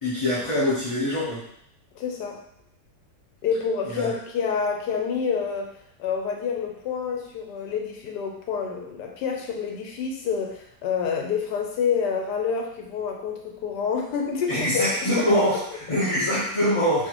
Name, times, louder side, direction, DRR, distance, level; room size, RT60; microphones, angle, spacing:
voice 1, 0.0-1.4 3.9-4.1 14.5-17.1, equal, 25° left, -11 dB, 0.7 m, -24 dB
voice 2, 1.9-2.4 3.4-5.7 6.0-14.8 15.1-15.4, left 6 dB, 75° left, 1 dB, 1.2 m, -28 dB
4.4 x 2.7 x 3.0 m, 0.71 s
omnidirectional pair, 1.8 m